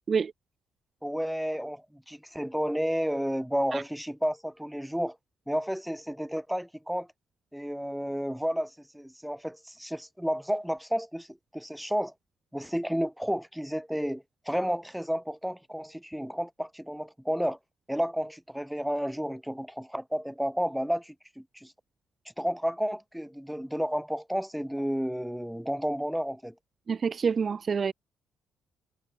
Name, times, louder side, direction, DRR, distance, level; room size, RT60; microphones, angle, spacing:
voice 1, 1.0-5.2 5.5-7.1 7.5-12.1 12.5-17.6 17.9-21.7 22.4-26.5, equal, ahead, 2.2 m, -31 dB
voice 2, 26.9-27.9, right 6 dB, 45° right, 0.5 m, -27 dB
hypercardioid pair, 45°, 0 cm